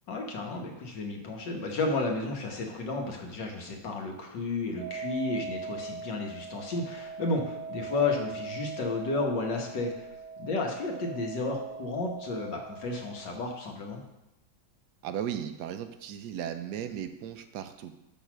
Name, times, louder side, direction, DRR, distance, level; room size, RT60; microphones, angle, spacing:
voice 1, 0.1-10.1 10.4-14.0, left 3 dB, 85° left, 2 dB, 1.9 m, -32 dB
sound 1, 4.8-13.4, right 4 dB, 50° left, 3.3 m, -41 dB
voice 2, 15.0-17.9, right 9 dB, 75° right, 9 dB, 1.1 m, -36 dB
6.6 x 5.5 x 6.0 m, 0.90 s
omnidirectional pair, 1.9 m